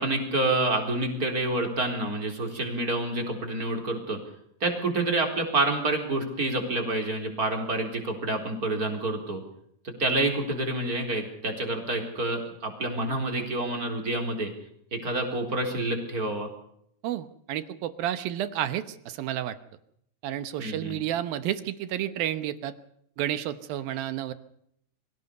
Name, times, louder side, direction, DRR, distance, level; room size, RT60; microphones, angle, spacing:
voice 1, 0.0-4.2 4.6-9.4 9.8-14.5 14.9-16.5 20.6-21.0, right 2 dB, 20° right, 3 dB, 4.2 m, -28 dB
voice 2, 17.0-19.6 20.2-22.7 23.2-24.3, right 12 dB, 70° right, 12 dB, 2.6 m, -31 dB
24.5 x 17.0 x 6.7 m, 0.71 s
omnidirectional pair, 4.8 m